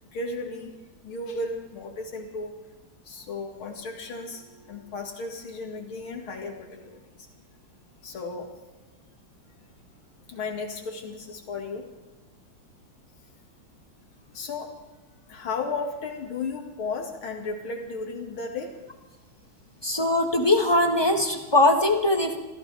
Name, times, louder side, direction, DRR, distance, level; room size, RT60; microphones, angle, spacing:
voice 1, 0.1-0.8 1.0-2.5 3.0-7.3 8.0-8.5 10.2-11.9 14.3-14.8 15.3-18.8, left 3 dB, 90° left, 2 dB, 2.9 m, -34 dB
voice 2, 19.8-22.4, left 2 dB, 15° left, 3 dB, 1.3 m, -21 dB
26.5 x 15.0 x 3.5 m, 1.2 s
omnidirectional pair, 2.2 m